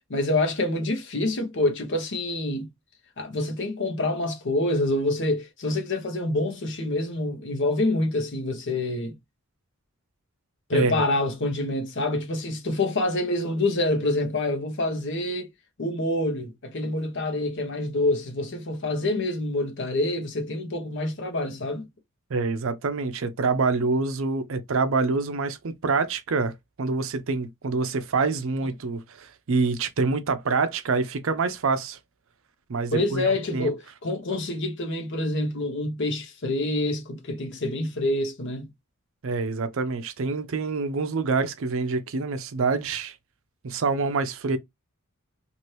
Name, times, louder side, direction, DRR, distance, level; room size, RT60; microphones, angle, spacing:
voice 1, 0.1-2.7 3.2-9.1 10.7-15.5 15.8-21.8 32.9-38.7, left 2 dB, 60° left, 0.9 m, -26 dB
voice 2, 10.7-11.0 22.3-26.5 26.8-32.0 32.7-33.7 39.2-43.2 43.6-44.6, right 4 dB, 65° right, 0.5 m, -26 dB
2.8 x 2.5 x 3.1 m
head